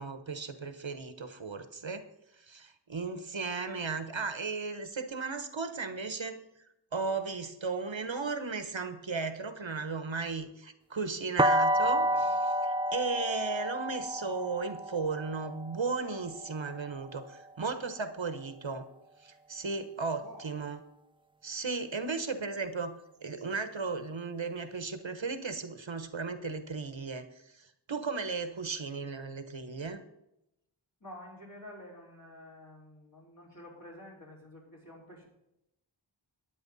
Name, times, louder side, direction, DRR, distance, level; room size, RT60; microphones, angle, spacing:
voice 1, 0.0-2.1 2.4-6.4 6.9-18.9 19.2-20.8 21.4-22.9 23.2-30.0, right 4 dB, 75° right, 9 dB, 1.2 m, -35 dB
sound 1, 11.4-17.2, equal, 10° right, 0.3 m, -30 dB
voice 2, 20.2-20.5 31.0-35.3, left 1 dB, 45° left, -5 dB, 5.4 m, -49 dB
12.0 x 9.7 x 4.1 m, 0.84 s
wide cardioid pair, 50°, 47 cm